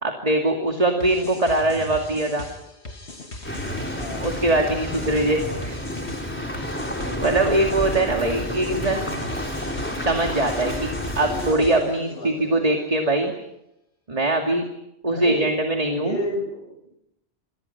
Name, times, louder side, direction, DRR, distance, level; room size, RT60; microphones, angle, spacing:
voice 1, 0.0-2.5 4.2-5.7 7.2-9.0 10.0-10.9 11.2-13.3 14.1-14.7 15.0-16.2, right 2 dB, 35° right, 2 dB, 2.6 m, -22 dB
sound 1, 1.0-12.1, left 2 dB, 85° left, 2.6 m, -38 dB
sound 2, 3.4-11.5, left 1 dB, 10° left, 3.8 m, -30 dB
voice 2, 3.9-4.3 7.0-7.6 11.2-12.7 15.1-15.5 15.9-16.9, left 1 dB, 60° left, 3 dB, 7.7 m, -32 dB
28.5 x 27.0 x 6.0 m, 0.86 s
omnidirectional pair, 1.1 m